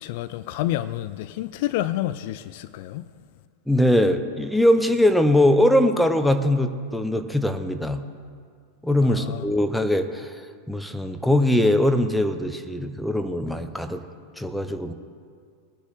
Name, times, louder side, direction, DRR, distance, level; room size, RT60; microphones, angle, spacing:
voice 1, 0.0-3.0 9.0-9.4, left 14 dB, 50° left, 0.4 m, -29 dB
voice 2, 3.7-8.0 8.8-10.3 10.7-14.0 14.4-14.9, left 1 dB, ahead, 0.8 m, -21 dB
21.0 x 9.7 x 3.6 m
figure-of-eight pair, 90°, 0 cm